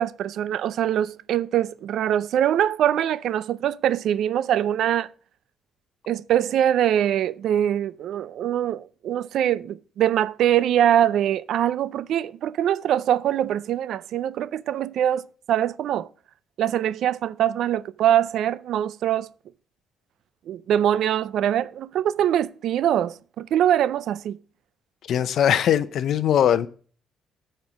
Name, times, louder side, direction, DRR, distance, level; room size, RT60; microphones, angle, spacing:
voice 1, 0.0-5.1 6.1-16.1 16.6-19.3 20.5-24.4, right 10 dB, 75° right, 0.4 m, -23 dB
voice 2, 25.1-26.7, left 9 dB, 70° left, 0.6 m, -20 dB
8.4 x 4.4 x 6.1 m
cardioid pair, 90°, 0 cm